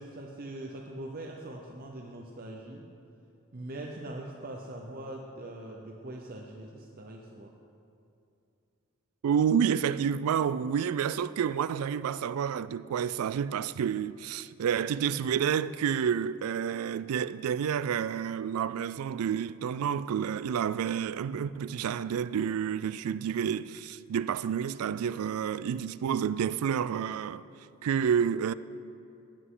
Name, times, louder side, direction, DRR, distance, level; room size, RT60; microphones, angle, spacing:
voice 1, 0.0-2.9 3.5-7.5, right 1 dB, 45° right, 0.8 m, -42 dB
voice 2, 9.2-27.4 27.8-28.5, right 8 dB, 75° right, 0.3 m, -29 dB
17.5 x 8.1 x 3.8 m
head